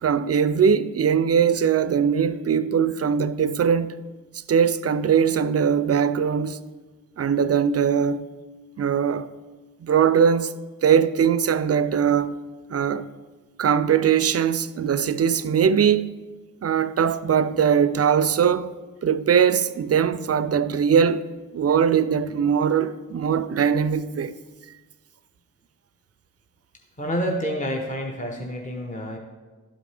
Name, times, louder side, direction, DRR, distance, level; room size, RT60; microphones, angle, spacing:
voice 1, 0.0-4.0 4.5-6.6 7.2-8.3 8.8-9.3 9.8-10.5 10.8-12.4 12.7-13.1 13.6-16.1 16.6-18.7 19.0-21.3 21.5-24.3, right 7 dB, 45° right, 0.4 m, -21 dB
voice 2, 27.0-29.2, equal, 20° left, 0.9 m, -28 dB
11.5 x 5.1 x 3.3 m
cardioid pair, 45°, 35 cm